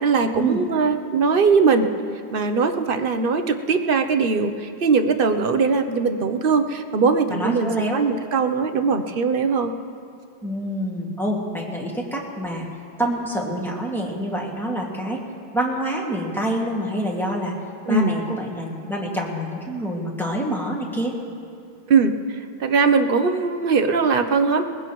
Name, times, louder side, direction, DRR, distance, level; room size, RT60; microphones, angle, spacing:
voice 1, 0.0-1.9 2.3-9.7 17.9-18.1 21.9-22.1 22.6-24.6, right 5 dB, 55° right, 7 dB, 0.9 m, -20 dB
voice 2, 7.3-8.0 10.4-12.7 13.0-15.2 15.5-17.5 17.9-21.2, right 1 dB, ahead, -3 dB, 1.9 m, -26 dB
21.5 x 16.5 x 3.1 m, 2.4 s
omnidirectional pair, 1.2 m